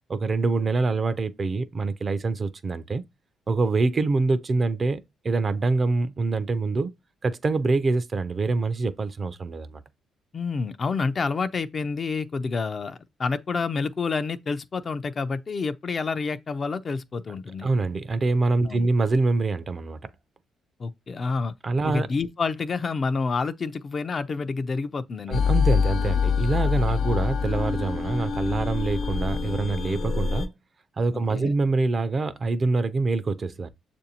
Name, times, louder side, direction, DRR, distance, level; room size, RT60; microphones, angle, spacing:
voice 1, 0.1-3.0 3.5-6.9 7.2-9.8 17.6-20.0 21.6-22.1 25.3-30.5 31.0-33.7, right 3 dB, 40° right, 0.4 m, -25 dB
voice 2, 10.3-17.7 18.7-18.9 20.8-21.5 21.8-25.4 26.9-27.0 31.1-31.5, left 4 dB, 40° left, 0.4 m, -28 dB
sound 1, 25.3-30.5, left 6 dB, 65° left, 0.7 m, -25 dB
6.6 x 2.6 x 2.8 m
cardioid pair, 90°, 0 cm